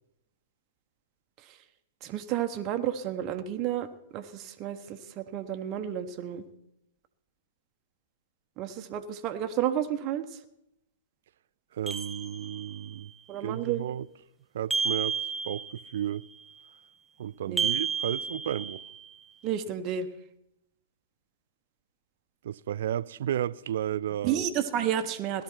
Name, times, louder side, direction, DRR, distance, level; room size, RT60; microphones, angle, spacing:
voice 1, 2.0-3.9 4.1-6.4 8.6-10.4 13.3-13.9 17.5-17.7 19.4-20.1 24.2-25.4, right 10 dB, 30° right, 1.0 m, -31 dB
voice 2, 11.7-13.1 13.4-14.1 14.5-15.2 15.4-16.3 17.2-18.8 22.4-24.4, right 11 dB, 55° right, 0.4 m, -33 dB
sound 1, 11.9-12.9 14.7-16.0 17.6-19.1, right 5 dB, 5° right, 0.8 m, -31 dB
17.5 x 12.5 x 4.5 m
figure-of-eight pair, 110°, 0 cm